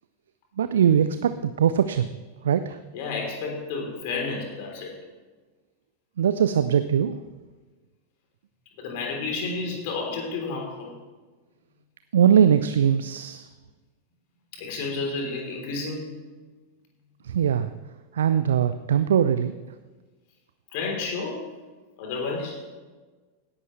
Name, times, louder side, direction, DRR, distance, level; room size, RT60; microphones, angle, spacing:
voice 1, 0.6-2.1 2.4-2.8 6.2-7.2 12.1-13.5 17.2-17.7 18.1-19.5, right 8 dB, 65° right, 12 dB, 0.4 m, -21 dB
voice 2, 2.9-4.9 8.8-10.9 14.5-16.0 20.7-21.4 22.0-22.6, left 4 dB, 50° left, 0 dB, 3.5 m, -31 dB
17.0 x 11.0 x 3.2 m, 1.3 s
figure-of-eight pair, 90°, 0 cm